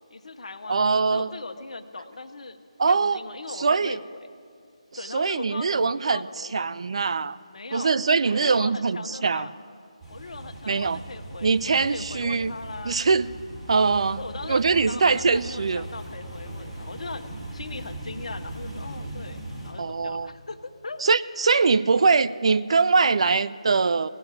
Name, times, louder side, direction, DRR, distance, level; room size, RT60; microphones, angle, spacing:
voice 1, 0.1-4.2 5.0-6.7 7.5-8.0 8.2-9.5 10.1-13.0 14.2-17.2 17.5-21.0, left 3 dB, 65° left, 9 dB, 0.8 m, -39 dB
voice 2, 0.7-1.3 2.8-3.2 3.6-4.0 5.1-7.4 7.7-9.5 10.7-11.0 11.4-12.5 12.8-13.3 13.7-14.2 14.5-15.9 19.8-20.3 21.0-24.1, right 4 dB, 55° right, 16 dB, 0.3 m, -22 dB
sound 1, 10.0-19.7, right 1 dB, 5° right, 2.5 m, -39 dB
16.5 x 5.7 x 9.3 m, 2.3 s
figure-of-eight pair, 160°, 4 cm